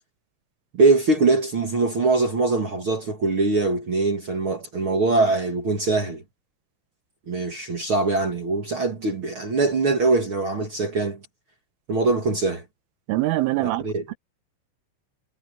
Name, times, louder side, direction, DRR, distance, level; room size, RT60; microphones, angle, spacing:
voice 1, 0.7-6.2 7.3-11.2 11.9-12.6 13.6-14.1, right 3 dB, 55° right, 1.5 m, -22 dB
voice 2, 13.1-14.1, right 18 dB, 85° right, 3.7 m, -24 dB
omnidirectional pair, 5.6 m